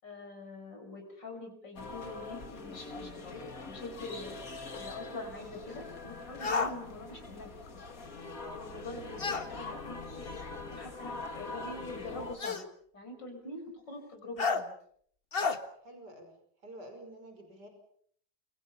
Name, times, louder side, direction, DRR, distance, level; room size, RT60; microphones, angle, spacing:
voice 1, 0.0-4.4 4.8-7.8 8.5-10.3 10.7-12.7 12.9-14.7, left 2 dB, 85° left, 4 dB, 6.2 m, -45 dB
sound 1, 1.8-12.4, left 3 dB, 50° left, 2.8 m, -43 dB
sound 2, 6.4-6.7 9.2-9.5 10.7-10.8 12.4-12.7 14.4-14.6 15.3-15.6, left 4 dB, 35° left, 1.6 m, -30 dB
voice 2, 15.8-16.3 16.6-17.7, right 1 dB, 70° right, 5 dB, 6.2 m, -49 dB
30.0 x 24.5 x 5.7 m, 0.62 s
omnidirectional pair, 1.9 m